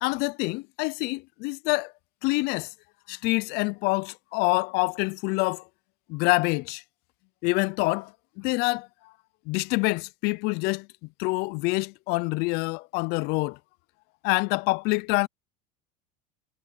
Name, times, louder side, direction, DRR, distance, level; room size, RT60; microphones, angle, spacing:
voice 1, 0.0-1.9 2.2-2.7 3.1-5.6 6.1-6.8 7.4-8.1 8.4-8.9 9.5-10.9 11.2-13.6 14.2-15.3, left 25 dB, 55° left, 0.5 m, -26 dB
supercardioid pair, 125°, 20 cm